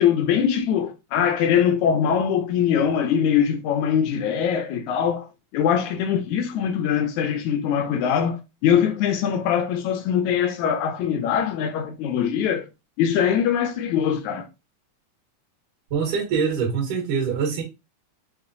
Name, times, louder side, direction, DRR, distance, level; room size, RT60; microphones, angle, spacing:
voice 1, 0.0-12.7 13.0-14.5, left 8 dB, 80° left, 1.8 m, -22 dB
voice 2, 15.9-17.6, right 6 dB, 85° right, 2.9 m, -24 dB
6.7 x 2.6 x 2.6 m
omnidirectional pair, 3.6 m